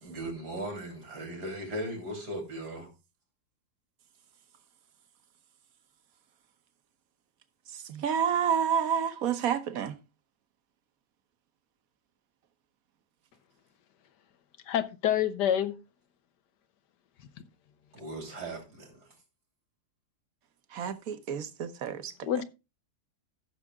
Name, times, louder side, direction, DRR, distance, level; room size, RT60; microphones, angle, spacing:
voice 1, 0.0-2.9 17.9-19.0, right 1 dB, 75° right, 3.9 m, -38 dB
voice 2, 7.7-9.9 20.7-22.3, right 8 dB, 60° right, 1.4 m, -29 dB
voice 3, 14.7-15.8 17.2-17.3 22.2-22.4, left 10 dB, 90° left, 1.5 m, -27 dB
14.5 x 6.5 x 3.6 m
omnidirectional pair, 1.7 m